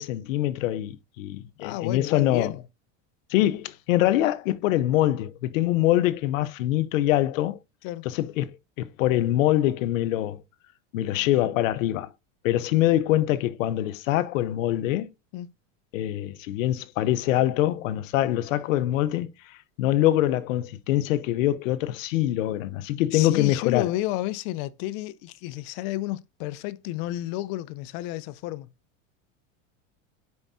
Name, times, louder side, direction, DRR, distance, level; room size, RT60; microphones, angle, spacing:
voice 1, 0.0-2.5 3.3-7.6 8.0-10.4 10.9-12.1 12.4-15.1 15.9-19.3 19.8-23.9, left 14 dB, 90° left, 0.8 m, -24 dB
voice 2, 1.6-2.6 7.8-8.0 15.3-15.5 23.1-28.7, left 16 dB, 60° left, 0.7 m, -31 dB
9.7 x 4.6 x 2.6 m
supercardioid pair, 130°, 38 cm